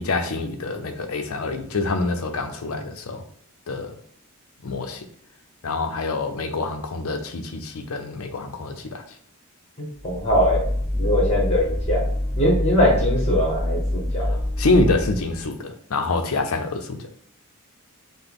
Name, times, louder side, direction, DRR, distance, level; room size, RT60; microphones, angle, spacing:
voice 1, 0.0-3.2 3.7-3.9 4.6-5.0 5.6-9.0 14.6-17.1, left 3 dB, 80° left, 0.6 m, -26 dB
voice 2, 9.8-10.6 11.0-12.0 12.4-14.3, equal, 30° left, 1.2 m, -21 dB
sound 1, 10.0-15.5, left 1 dB, 5° left, 0.6 m, -25 dB
5.7 x 2.1 x 3.5 m
head